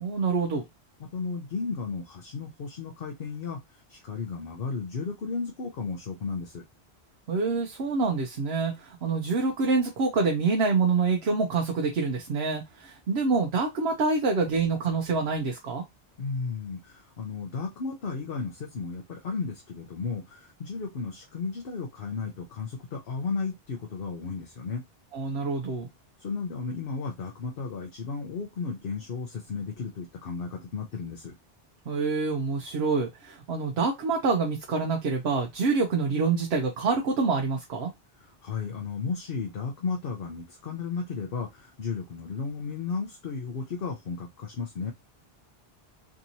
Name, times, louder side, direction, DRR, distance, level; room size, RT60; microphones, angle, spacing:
voice 1, 0.0-0.6 7.3-15.8 25.1-25.9 31.9-37.9, right 4 dB, 85° right, 1.0 m, -26 dB
voice 2, 1.0-6.6 16.2-24.8 26.2-31.3 38.2-44.9, left 5 dB, 65° left, 1.0 m, -34 dB
3.6 x 2.9 x 2.7 m
omnidirectional pair, 1.0 m